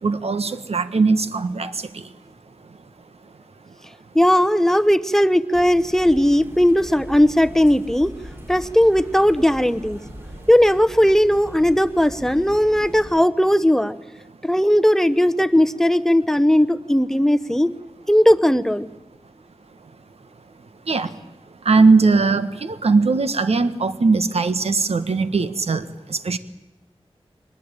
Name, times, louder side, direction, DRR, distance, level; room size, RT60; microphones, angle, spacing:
voice 1, 0.0-2.0 20.9-21.1 21.6-26.4, right 4 dB, 80° right, 11 dB, 1.3 m, -19 dB
voice 2, 4.1-8.1 8.5-10.0 10.5-14.0 14.4-17.7 18.1-18.9, equal, 5° left, 13 dB, 0.9 m, -17 dB
sound 1, 5.5-13.2, equal, 20° right, 3.5 m, -40 dB
23.0 x 20.0 x 9.0 m, 1.0 s
wide cardioid pair, 90°, 11 cm